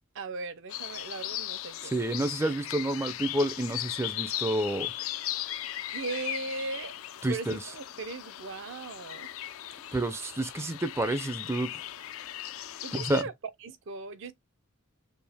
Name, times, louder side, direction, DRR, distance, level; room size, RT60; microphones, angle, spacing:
voice 1, 0.1-2.1 5.9-6.9 7.3-9.3 12.8-13.3 13.6-14.3, right 3 dB, 60° right, 0.5 m, -38 dB
sound 1, 0.7-13.2, left 13 dB, 70° left, 0.4 m, -38 dB
voice 2, 1.9-4.9 7.2-7.6 9.9-11.7 13.0-13.2, right 1 dB, 10° right, 0.4 m, -29 dB
4.5 x 2.8 x 3.4 m
head